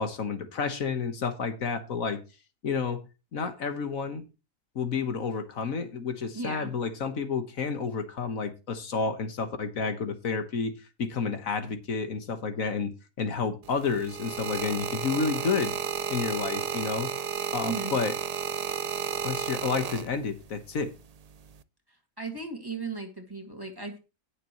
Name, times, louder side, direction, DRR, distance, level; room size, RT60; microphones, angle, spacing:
voice 1, 0.0-2.2 2.6-3.0 3.3-4.2 4.7-10.7 11.0-15.7 16.1-17.1 17.5-18.1 19.2-20.9, left 5 dB, 70° left, 1.7 m, -30 dB
voice 2, 6.3-6.7 17.6-18.0 22.2-24.0, right 4 dB, 15° right, 2.1 m, -36 dB
sound 1, 13.6-20.5 21.3-21.6, right 7 dB, 90° right, 0.3 m, -32 dB
18.5 x 6.8 x 3.0 m
omnidirectional pair, 1.5 m